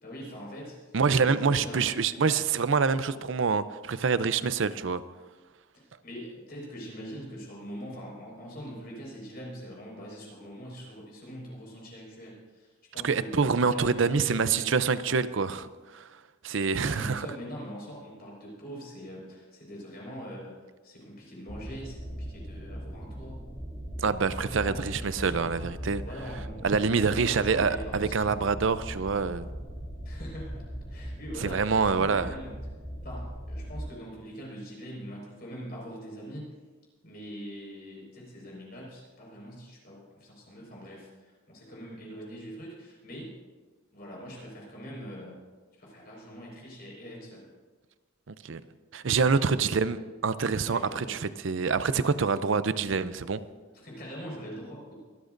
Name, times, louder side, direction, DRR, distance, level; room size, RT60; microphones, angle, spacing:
voice 1, 0.0-1.9 5.7-14.9 16.7-20.6 20.8-23.5 24.6-25.5 26.0-28.3 30.0-32.6 33.0-36.5 37.0-43.4 43.9-45.4 45.8-47.5 50.7-51.2 53.7-54.9, equal, 45° left, 5.0 m, -43 dB
voice 2, 0.9-5.0 13.0-16.1 16.4-17.3 24.0-26.0 26.6-29.5 31.4-32.3 48.3-48.6 48.9-53.4, right 5 dB, 65° right, 0.5 m, -26 dB
sound 1, 21.5-33.9, equal, 15° right, 2.8 m, -39 dB
24.0 x 13.0 x 2.6 m
head